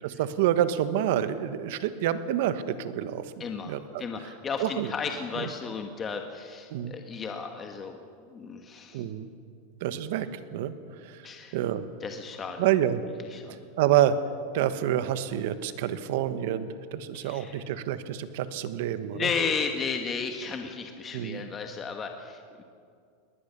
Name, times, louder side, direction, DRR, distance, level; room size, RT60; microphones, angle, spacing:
voice 1, 0.0-4.0 4.6-4.9 5.4-5.5 6.7-6.9 8.9-9.3 9.8-10.7 11.0-11.3 11.5-11.8 12.6-13.0 13.4-14.2 14.5-19.3 21.1-21.4, right 11 dB, 65° right, 12 dB, 1.3 m, -28 dB
voice 2, 3.4-8.0 8.3-9.0 11.2-11.6 12.0-12.7 13.3-13.6 17.1-17.6 19.1-22.6, left 5 dB, 20° left, 4 dB, 1.4 m, -34 dB
21.5 x 19.0 x 6.9 m, 2.3 s
supercardioid pair, 140°, 0 cm